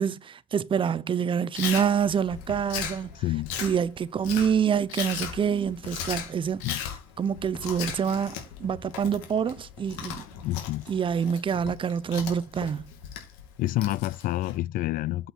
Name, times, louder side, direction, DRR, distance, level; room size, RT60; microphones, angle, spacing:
voice 1, 0.0-3.2 3.6-6.6 7.2-10.2 10.9-12.8, right 7 dB, 30° right, 0.6 m, -26 dB
Chewing mastication, 1.5-14.6, left 8 dB, 80° left, 2.7 m, -37 dB
voice 2, 3.2-3.5 6.6-6.8 10.4-10.8 13.6-15.3, left 16 dB, 55° left, 0.4 m, -28 dB
8.1 x 5.8 x 4.6 m
supercardioid pair, 95°, 17 cm